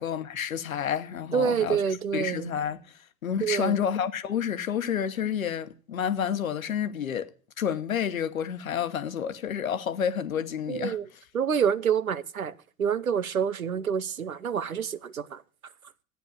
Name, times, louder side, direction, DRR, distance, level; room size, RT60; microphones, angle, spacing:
voice 1, 0.0-2.8 3.2-7.3 7.6-11.2, left 8 dB, 75° left, 1.1 m, -30 dB
voice 2, 1.3-2.4 3.4-3.7 10.7-11.0 11.3-12.5 12.8-15.4, right 7 dB, 85° right, 0.7 m, -27 dB
14.0 x 9.1 x 6.4 m
figure-of-eight pair, 80°, 41 cm